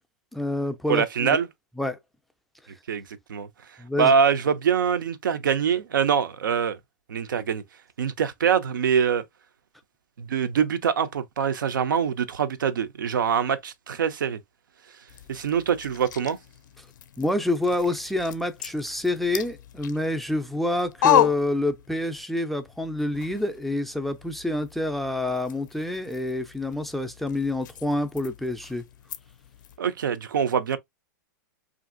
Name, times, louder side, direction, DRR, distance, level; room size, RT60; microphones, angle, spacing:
voice 1, 0.3-1.3 1.8-2.0 3.8-4.1 17.2-28.8, left 2 dB, ahead, 0.3 m, -27 dB
voice 2, 0.9-1.5 2.9-3.0 3.3-3.5 4.0-6.8 7.1-7.6 8.0-9.2 10.2-14.4 15.3-16.4 29.8-30.8, right 7 dB, 85° right, 0.4 m, -24 dB
sound 1, 15.1-22.3 22.6-29.8, left 11 dB, 70° left, 0.4 m, -32 dB
2.8 x 2.5 x 2.5 m
hypercardioid pair, 120°, 10 cm